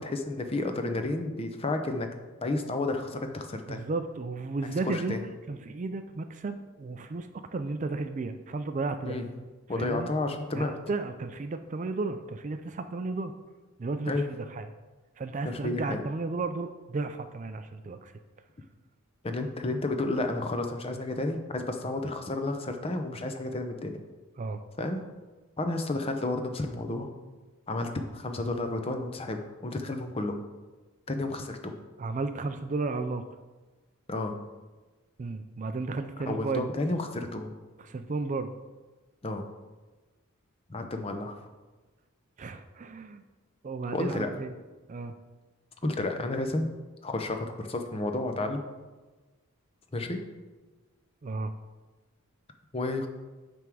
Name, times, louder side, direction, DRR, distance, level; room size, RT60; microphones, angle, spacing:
voice 1, 0.0-2.1 2.4-3.8 4.6-5.2 9.0-9.3 9.7-10.8 14.1-14.2 15.4-16.0 19.2-24.0 24.8-25.0 25.6-27.1 27.7-30.4 31.1-31.7 34.1-34.4 36.3-37.5 39.2-39.5 40.7-41.4 43.9-44.3 45.8-46.7 47.0-48.6 49.9-50.2 52.7-53.1, left 2 dB, 25° left, 6 dB, 0.6 m, -31 dB
voice 2, 3.7-5.2 5.5-9.2 9.8-10.1 10.5-13.3 13.8-14.7 15.2-18.1 24.4-24.6 32.0-33.2 35.2-36.7 37.8-38.5 42.4-43.2 43.6-44.5 44.9-45.1 51.2-51.5, right 3 dB, 35° right, 9 dB, 0.4 m, -33 dB
9.2 x 3.5 x 6.1 m, 1.3 s
head